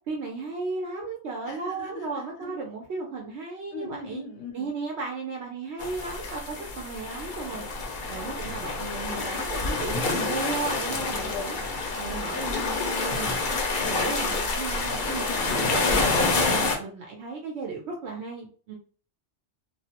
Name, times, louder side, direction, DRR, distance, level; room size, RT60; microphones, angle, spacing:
voice 1, 0.1-4.2 4.5-7.6 8.1-11.6 12.0-13.4 13.9-18.8, right 4 dB, 70° right, 0 dB, 0.8 m, -35 dB
voice 2, 1.4-2.5 3.7-4.7 9.7-9.9 11.2-11.7 13.8-14.5 15.4-15.7, left 4 dB, 80° left, 3 dB, 0.9 m, -40 dB
sound 1, 5.8-16.8, left 3 dB, 55° left, 0.6 m, -28 dB
2.3 x 2.0 x 2.8 m, 0.40 s
omnidirectional pair, 1.2 m